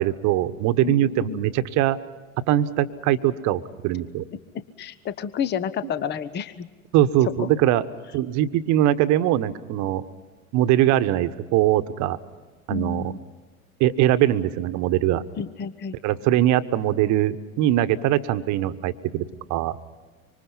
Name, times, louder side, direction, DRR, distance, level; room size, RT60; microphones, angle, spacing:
voice 1, 0.0-2.0 2.5-4.2 6.9-7.8 8.1-10.0 10.5-12.2 12.7-13.1 13.8-15.2 16.0-19.8, right 13 dB, 40° right, 12 dB, 1.3 m, -22 dB
voice 2, 0.8-1.5 4.8-6.7 7.4-7.5 12.7-13.3 15.4-16.0, left 7 dB, 25° left, 14 dB, 1.0 m, -30 dB
26.0 x 25.0 x 5.7 m, 1.3 s
figure-of-eight pair, 80°, 42 cm